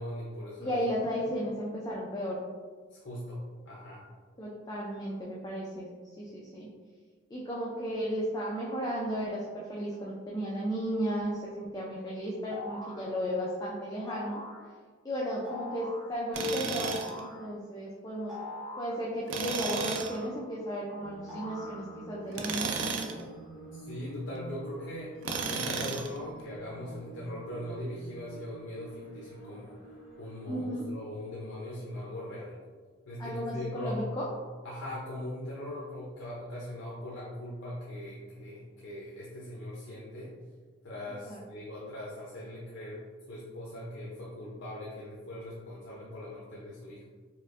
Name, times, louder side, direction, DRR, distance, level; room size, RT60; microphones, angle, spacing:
voice 1, 0.0-0.8 2.9-4.0 23.7-25.1 25.5-29.8 30.2-32.6 33.1-34.1 34.6-40.3 40.8-47.1, left 1 dB, 70° left, -6 dB, 0.6 m, -40 dB
voice 2, 0.6-2.4 4.4-5.9 6.2-6.7 7.3-14.4 15.0-18.3 18.8-23.3 30.4-30.9 33.2-34.3 41.3-41.4, equal, 20° left, -5 dB, 0.4 m, -34 dB
sound 1, 12.5-13.1 14.1-14.6 15.5-16.1 16.8-17.4 18.3-19.0 19.6-20.6 21.3-22.1, left 2 dB, 5° right, 1.1 m, -42 dB
Tools, 16.3-17.2 19.3-20.2 22.3-23.2 25.2-26.2, right 5 dB, 70° right, 0.4 m, -33 dB
Abadoned pyramid - atmo orchestral and drone - sad mood, 21.0-30.9, right 2 dB, 50° left, 1.0 m, -48 dB
4.4 x 2.5 x 2.5 m, 1.5 s
head